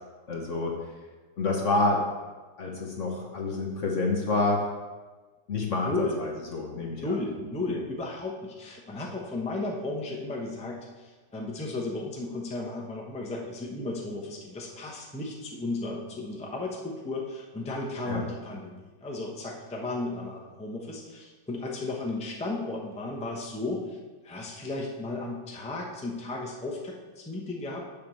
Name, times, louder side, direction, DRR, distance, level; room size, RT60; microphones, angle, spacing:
voice 1, 0.3-0.8 1.4-2.0 2.6-4.6 5.5-7.2 7.7-7.8 18.0-18.3, left 3 dB, 50° left, 0 dB, 1.2 m, -28 dB
voice 2, 5.8-6.2 6.8-24.0 24.2-27.8, left 2 dB, 5° left, -2 dB, 0.7 m, -34 dB
6.9 x 4.7 x 6.9 m, 1.3 s
omnidirectional pair, 1.9 m